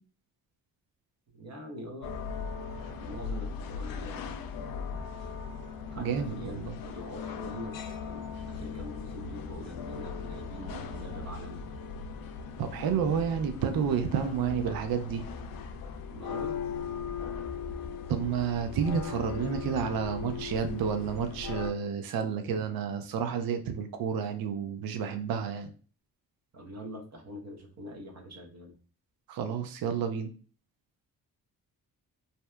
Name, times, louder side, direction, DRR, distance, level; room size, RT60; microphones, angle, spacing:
voice 1, 1.3-2.2 3.0-4.3 5.9-11.6 16.1-16.7 26.5-28.7, equal, 45° right, 2 dB, 0.8 m, -44 dB
sound 1, 2.0-21.7, left 5 dB, 65° left, 0.5 m, -38 dB
voice 2, 6.0-6.8 12.6-15.2 18.1-25.7 29.3-30.3, right 7 dB, 65° right, 7 dB, 0.5 m, -30 dB
2.7 x 2.1 x 2.2 m, 0.39 s
cardioid pair, 60°, 38 cm